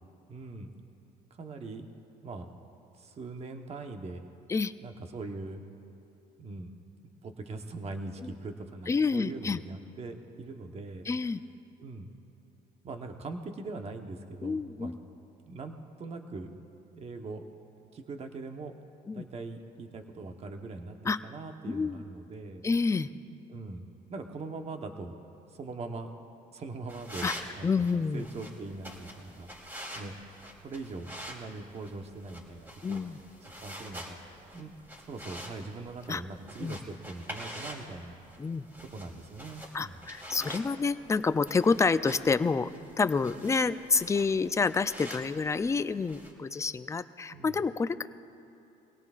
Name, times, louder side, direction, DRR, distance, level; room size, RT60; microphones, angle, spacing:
voice 1, 0.3-0.7 1.3-1.9 2.2-2.5 3.0-4.3 4.8-5.6 6.4-6.8 7.2-11.1 11.8-12.1 12.8-14.9 15.5-16.6 16.9-17.4 17.9-18.8 19.1-21.0 21.2-22.6 23.5-25.2 25.5-26.1 26.5-29.5 29.9-30.1 30.6-33.1 33.4-34.2 34.5-34.7 35.0-38.2 38.9-40.0 47.3-47.6, right 3 dB, 40° right, 5 dB, 1.1 m, -41 dB
voice 2, 8.9-9.6 11.1-11.4 14.4-15.0 19.1-19.2 21.0-21.2 21.7-22.0 22.6-23.1 27.2-27.3 27.6-28.3 32.8-33.2 36.1-36.2 36.6-36.8 38.4-38.7 39.7-42.7 43.0-48.1, left 4 dB, 15° left, 12 dB, 0.4 m, -28 dB
sound 1, 26.9-46.3, equal, 10° right, 3.3 m, -46 dB
23.5 x 17.5 x 2.5 m, 2.8 s
cardioid pair, 110°, 17 cm